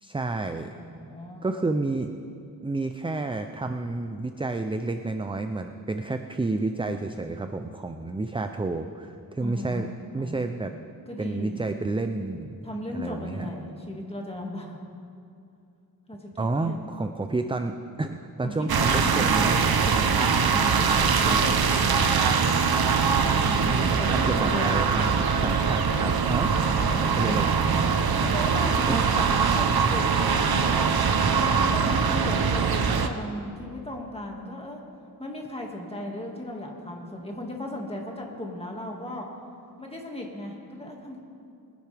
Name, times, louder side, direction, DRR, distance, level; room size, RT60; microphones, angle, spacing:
voice 1, 0.0-0.8 1.4-2.1 2.6-9.9 10.1-10.7 11.2-12.7 12.9-13.5 16.4-19.6 23.4-26.5 27.0-27.5 28.9-29.1, right 3 dB, 15° right, 7 dB, 0.4 m, -30 dB
voice 2, 0.7-1.6 9.4-9.9 10.2-10.6 11.1-11.6 12.6-14.8 16.1-16.3 16.6-16.8 18.4-21.8 23.2-25.0 26.7-27.4 28.2-30.9 31.4-34.8 35.2-39.3 39.8-41.2, left 1 dB, 15° left, 0 dB, 2.0 m, -36 dB
sound 1, 18.7-33.1, right 5 dB, 65° right, 0.9 m, -22 dB
22.0 x 10.5 x 3.4 m, 2.5 s
wide cardioid pair, 95°, 39 cm